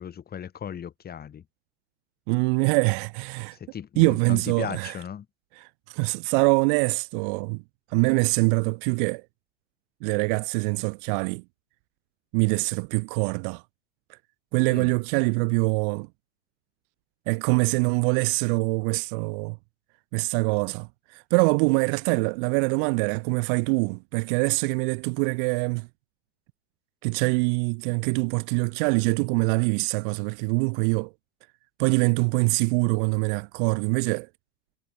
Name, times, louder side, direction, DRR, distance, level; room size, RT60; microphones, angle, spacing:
voice 1, 0.0-1.4 3.5-5.3 14.7-14.9, left 8 dB, 25° left, 5.0 m, -36 dB
voice 2, 2.3-3.6 4.0-5.0 5.6-7.6 7.9-9.2 10.0-11.4 12.3-13.6 14.1-14.2 14.5-16.1 17.3-19.6 20.1-25.9 27.0-31.1 31.8-34.3, right 36 dB, 45° right, 0.7 m, -24 dB
hypercardioid pair, 105°, 35 cm